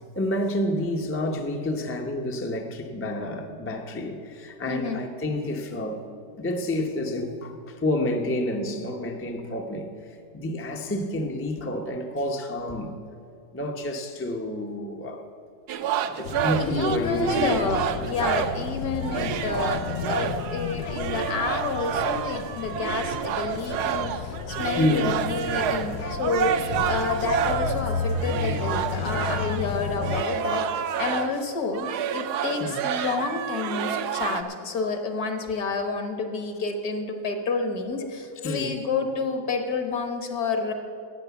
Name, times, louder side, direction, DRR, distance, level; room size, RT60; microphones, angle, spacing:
voice 1, 0.2-6.1 6.4-9.9 10.3-13.0 13.5-15.2 16.0-17.6 18.3-18.4 24.8-25.2 32.5-32.7 38.4-38.8, left 1 dB, 15° left, 3 dB, 0.5 m, -29 dB
voice 2, 4.7-5.0 9.6-9.7 16.6-40.7, left 4 dB, 60° left, 6 dB, 1.6 m, -29 dB
sound 1, 15.7-18.7 19.0-31.5 31.7-34.4, right 8 dB, 70° right, 1.1 m, -29 dB
sound 2, 16.2-30.2, left 6 dB, 90° left, 1.3 m, -33 dB
13.0 x 8.9 x 7.0 m, 2.5 s
omnidirectional pair, 1.9 m